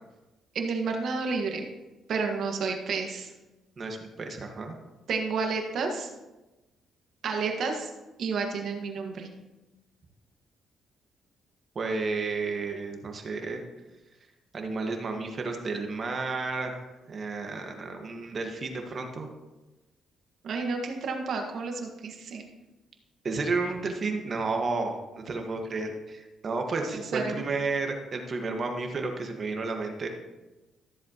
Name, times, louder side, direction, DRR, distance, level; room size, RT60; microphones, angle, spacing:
voice 1, 0.5-1.6 2.1-3.3 5.1-6.1 7.2-7.9 8.2-9.3 20.4-22.5 26.9-27.4, right 4 dB, 65° right, 3 dB, 1.6 m, -30 dB
voice 2, 3.8-4.7 11.7-13.6 14.5-19.3 23.2-30.1, right 3 dB, 45° right, 4 dB, 1.5 m, -32 dB
13.5 x 7.4 x 3.0 m, 1.1 s
cardioid pair, 90°, 0 cm